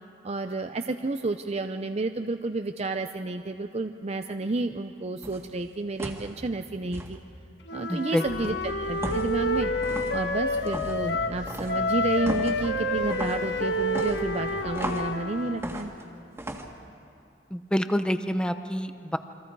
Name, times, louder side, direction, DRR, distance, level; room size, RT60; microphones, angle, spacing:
voice 1, 0.2-7.2 7.7-9.7 10.1-15.9, right 2 dB, 40° right, 6 dB, 0.6 m, -31 dB
sound 1, 5.2-5.5 6.0-6.3 6.9-7.1 9.0-9.4 9.8-10.2 10.7-11.0 11.5-11.8 12.3-12.6 13.1-13.4 13.9-15.1 15.6-16.0 16.4-16.7, right 1 dB, 15° right, 1.9 m, -35 dB
Wind instrument woodwind instrument, 7.7-11.4 11.7-15.6, left 1 dB, 75° left, 1.4 m, -29 dB
voice 2, 7.9-8.3 17.5-19.2, equal, 5° left, 9 dB, 0.7 m, -27 dB
sound 2, 8.2-15.0, right 1 dB, 90° right, 2.0 m, -41 dB
28.5 x 24.5 x 4.7 m, 2.7 s
head